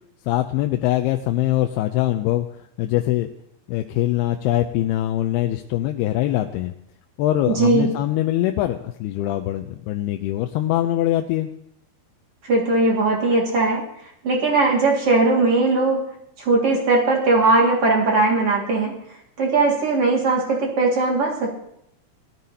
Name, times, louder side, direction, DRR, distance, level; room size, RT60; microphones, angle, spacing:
voice 1, 0.3-3.3 3.7-6.7 7.2-11.5, left 14 dB, 85° left, 5 dB, 2.6 m, -23 dB
voice 2, 7.6-7.9 12.5-13.8 14.2-16.0 16.4-18.9 19.4-21.5, right 3 dB, 45° right, -2 dB, 2.5 m, -19 dB
19.5 x 13.0 x 2.8 m, 0.76 s
omnidirectional pair, 4.6 m